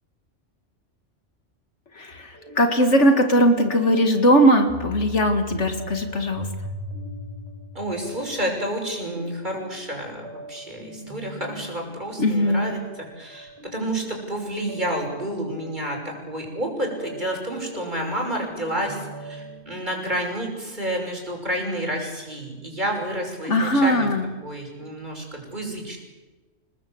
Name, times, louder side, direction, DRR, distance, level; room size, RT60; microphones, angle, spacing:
voice 1, 2.0-6.5 12.2-12.7 23.4-24.2, equal, 70° left, 6 dB, 2.3 m, -19 dB
sound 1, 2.3-19.6, equal, 20° right, 6.8 m, -41 dB
voice 2, 7.7-24.1 24.4-26.0, right 1 dB, 40° right, 1 dB, 6.2 m, -30 dB
28.0 x 19.5 x 7.9 m, 1.2 s
omnidirectional pair, 1.3 m